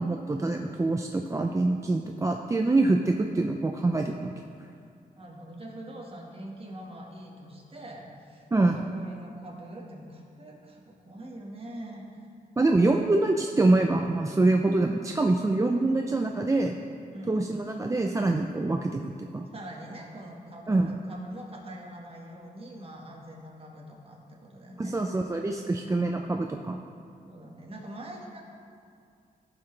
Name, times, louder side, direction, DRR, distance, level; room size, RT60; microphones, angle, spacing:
voice 1, 0.0-4.3 8.5-8.8 12.6-16.8 17.3-19.4 20.7-20.9 24.8-26.8, right 2 dB, 20° right, 3 dB, 0.4 m, -25 dB
voice 2, 5.1-12.3 12.8-13.0 17.1-17.4 19.5-24.9 27.2-28.4, right 1 dB, 35° right, -2 dB, 1.6 m, -44 dB
14.5 x 6.0 x 3.3 m, 2.4 s
wide cardioid pair, 105°, 16 cm